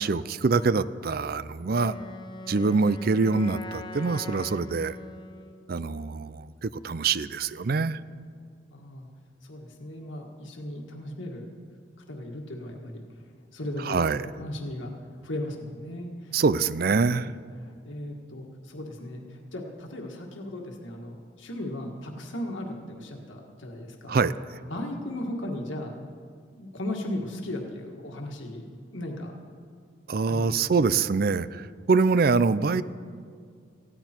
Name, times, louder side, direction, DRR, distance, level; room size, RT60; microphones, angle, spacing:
voice 1, 0.0-1.9 2.5-5.0 5.7-8.0 13.8-14.3 16.3-17.3 24.1-24.3 30.1-32.8, right 4 dB, 50° right, 16 dB, 0.4 m, -24 dB
Wind instrument woodwind instrument, 1.7-5.7, left 2 dB, 25° left, 0.8 m, -41 dB
voice 2, 8.7-9.1 9.4-11.5 12.1-13.0 13.5-14.0 14.4-14.9 15.2-16.4 17.2-17.3 17.8-24.2 24.7-25.9 26.6-28.7 28.9-29.3 30.3-30.8, left 1 dB, 75° left, 1 dB, 1.7 m, -36 dB
19.0 x 16.0 x 4.5 m, 2.2 s
head